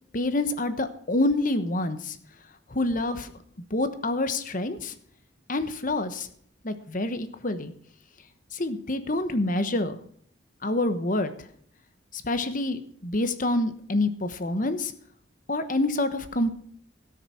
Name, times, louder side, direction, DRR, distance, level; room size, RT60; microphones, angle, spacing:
voice 1, 0.1-2.2 2.7-3.3 3.7-4.9 5.5-6.3 6.6-7.7 8.5-10.0 10.6-11.5 12.1-14.9 15.5-16.5, left 2 dB, 40° left, 10 dB, 1.1 m, -27 dB
17.5 x 6.6 x 5.7 m, 0.62 s
head